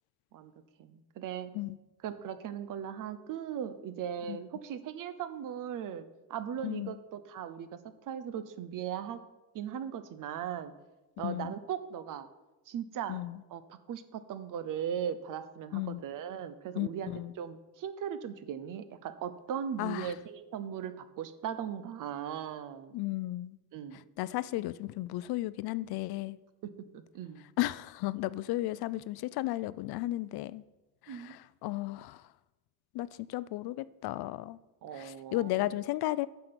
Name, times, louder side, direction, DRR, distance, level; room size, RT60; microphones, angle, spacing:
voice 1, 0.8-1.5 2.0-7.8 8.1-9.2 9.5-10.7 11.2-12.3 12.7-13.2 13.5-23.0 23.7-24.0 26.6-27.4 31.1-31.4 34.8-35.5, right 9 dB, 55° right, 0.8 m, -38 dB
voice 2, 6.6-7.0 11.2-11.6 13.1-13.4 15.7-16.0 16.8-17.3 19.8-20.2 22.9-23.6 23.9-26.4 27.6-30.6 31.0-32.3 32.9-34.6 34.9-36.3, left 17 dB, 70° left, 0.5 m, -34 dB
9.9 x 5.9 x 6.9 m
cardioid pair, 175°, 39 cm